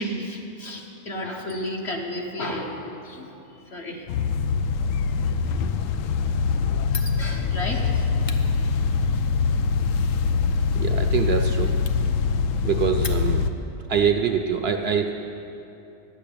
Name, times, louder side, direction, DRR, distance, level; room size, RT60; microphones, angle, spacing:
voice 1, 0.0-2.8 3.0-4.2 6.9-8.4 8.7-8.8, left 1 dB, 55° left, 0 dB, 1.5 m, -33 dB
sound 1, 4.1-13.5, left 5 dB, 80° left, 0.9 m, -23 dB
Fire, 6.9-13.7, left 4 dB, 40° left, 0.5 m, -43 dB
voice 2, 10.8-11.8 12.6-13.5 13.9-15.5, right 7 dB, 60° right, 5 dB, 0.7 m, -24 dB
10.0 x 7.4 x 8.6 m, 2.8 s
omnidirectional pair, 1.4 m